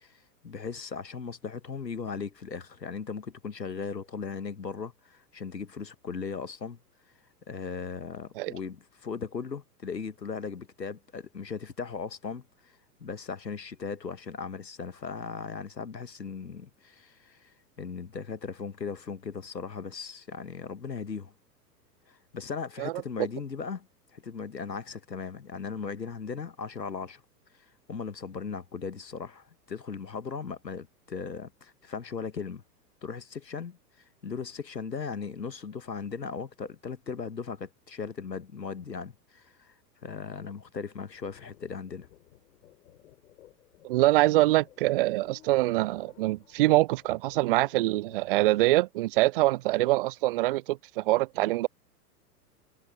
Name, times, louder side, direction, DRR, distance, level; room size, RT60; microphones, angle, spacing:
voice 1, 0.0-6.8 7.5-21.3 22.1-23.9 24.1-27.2 27.6-32.6 33.0-33.8 34.2-39.7 40.0-42.1, left 5 dB, 85° left, 1.6 m, -38 dB
sound 1, 40.9-48.5, left 13 dB, 55° left, 3.3 m, -57 dB
voice 2, 43.8-51.7, right 18 dB, 35° right, 0.5 m, -24 dB
figure-of-eight pair, 100°, 49 cm